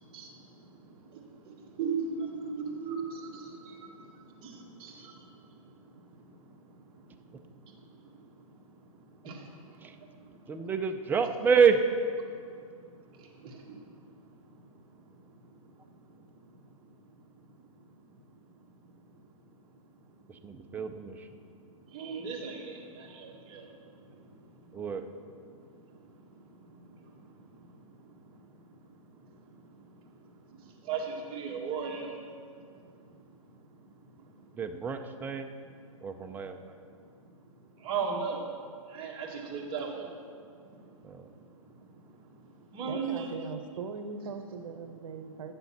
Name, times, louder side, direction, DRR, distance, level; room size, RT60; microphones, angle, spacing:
voice 1, 0.0-10.7 12.2-20.8 21.3-34.6 35.6-43.3, right 5 dB, 30° right, -2 dB, 1.8 m, -42 dB
voice 2, 10.5-11.8 20.3-21.3 24.7-25.0 34.6-35.5 36.0-36.7 41.0-41.3, right 6 dB, 10° right, 7 dB, 0.5 m, -28 dB
voice 3, 42.9-45.5, right 5 dB, 65° right, 8 dB, 1.0 m, -40 dB
9.5 x 6.9 x 5.9 m, 2.2 s
hypercardioid pair, 135°, 18 cm